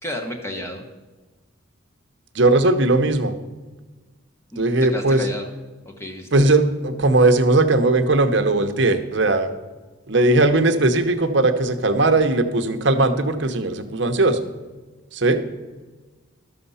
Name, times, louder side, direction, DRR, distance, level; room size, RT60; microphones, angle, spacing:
voice 1, 0.0-0.8 4.5-4.6 4.9-5.5 5.8-6.3, equal, 10° left, 3 dB, 1.2 m, -31 dB
voice 2, 2.3-3.3 4.6-5.2 6.3-9.5 10.1-14.4 15.1-15.4, right 2 dB, 55° right, 7 dB, 0.9 m, -18 dB
13.0 x 6.8 x 5.6 m, 1.3 s
head